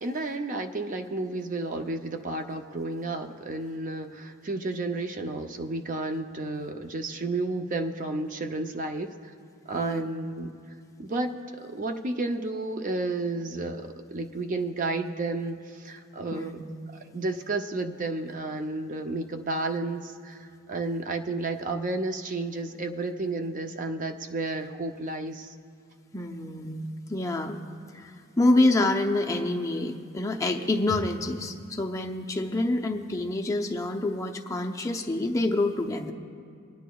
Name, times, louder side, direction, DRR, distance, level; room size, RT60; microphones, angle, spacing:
voice 1, 0.0-9.3 9.7-10.5 11.0-16.6 17.1-25.5, right 2 dB, 40° right, 6 dB, 0.5 m, -32 dB
voice 2, 16.3-16.6 26.1-27.6 27.9-36.1, left 2 dB, 15° left, 2 dB, 0.6 m, -27 dB
24.5 x 10.0 x 2.3 m, 2.5 s
head